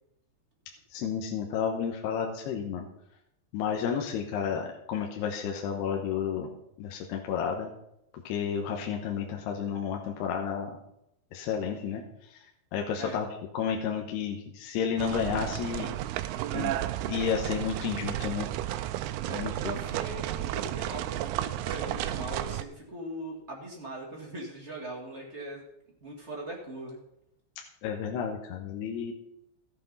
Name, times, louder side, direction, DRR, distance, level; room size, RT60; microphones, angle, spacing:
voice 1, 0.9-2.9 3.5-6.5 6.8-7.7 8.2-10.7 11.3-12.0 12.7-13.3 13.5-15.9 16.5-16.7 17.1-18.5 19.3-19.8 27.8-29.1, left 7 dB, 75° left, 1 dB, 3.0 m, -31 dB
sound 1, 15.0-22.6, right 13 dB, 80° right, 2.3 m, -33 dB
voice 2, 19.2-25.6 26.0-27.0, right 1 dB, 40° right, -3 dB, 0.9 m, -40 dB
14.0 x 8.3 x 5.4 m, 0.82 s
omnidirectional pair, 5.0 m